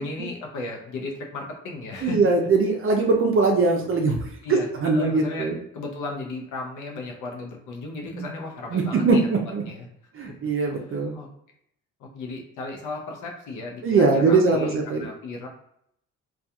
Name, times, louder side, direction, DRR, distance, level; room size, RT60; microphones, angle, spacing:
voice 1, 0.0-2.2 4.4-5.5 5.7-9.3 9.7-9.9 10.3-10.4 10.9-11.3 12.0-15.5, left 3 dB, 75° left, 1 dB, 0.6 m, -35 dB
voice 2, 2.0-5.6 8.1-8.3 8.7-9.6 10.2-11.1 13.8-15.0, right 3 dB, 45° right, 2 dB, 0.5 m, -21 dB
2.7 x 2.3 x 2.2 m, 0.74 s
cardioid pair, 90°, 30 cm